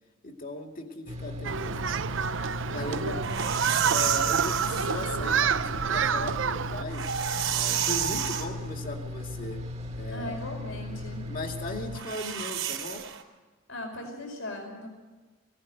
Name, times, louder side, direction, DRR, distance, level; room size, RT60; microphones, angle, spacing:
voice 1, 0.2-2.0 2.7-3.1 3.8-7.1 7.5-9.6 9.9-10.4 11.3-13.1, left 2 dB, 40° left, 3 dB, 2.3 m, -37 dB
sound 1, 1.1-12.0, left 1 dB, 35° right, 1.7 m, -37 dB
Human group actions, 1.4-6.8, right 7 dB, 65° right, 0.6 m, -28 dB
voice 2, 2.7-3.5 10.1-11.2 13.7-14.9, left 1 dB, 75° left, 2 dB, 5.1 m, -38 dB
sound 2, 3.1-4.9 6.7-8.5 11.9-13.2, right 9 dB, 85° right, 3.5 m, -30 dB
19.0 x 17.5 x 7.9 m, 1.3 s
head